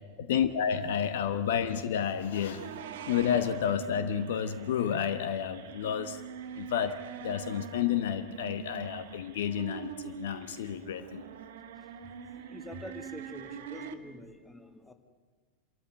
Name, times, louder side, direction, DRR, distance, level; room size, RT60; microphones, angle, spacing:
voice 1, 0.2-2.7 3.1-6.2 6.6-11.2, left 8 dB, 55° left, 11 dB, 1.0 m, -30 dB
sound 1, 2.2-13.9, right 7 dB, 55° right, 1.5 m, -44 dB
voice 2, 11.7-14.9, left 1 dB, 5° left, 7 dB, 1.9 m, -46 dB
26.5 x 14.0 x 9.2 m, 1.5 s
figure-of-eight pair, 90°, 0 cm